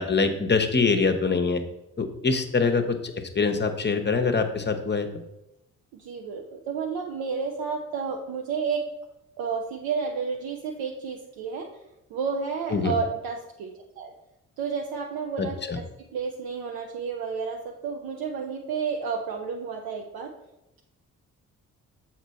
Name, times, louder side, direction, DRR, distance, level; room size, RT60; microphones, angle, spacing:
voice 1, 0.0-1.6 2.0-5.1 12.7-12.9 15.4-15.8, left 4 dB, 25° left, 6 dB, 0.9 m, -24 dB
voice 2, 5.9-8.9 9.4-11.7 12.1-14.1 14.6-20.3, right 5 dB, 60° right, 2 dB, 0.8 m, -31 dB
7.3 x 4.5 x 4.1 m, 0.93 s
figure-of-eight pair, 40°, 41 cm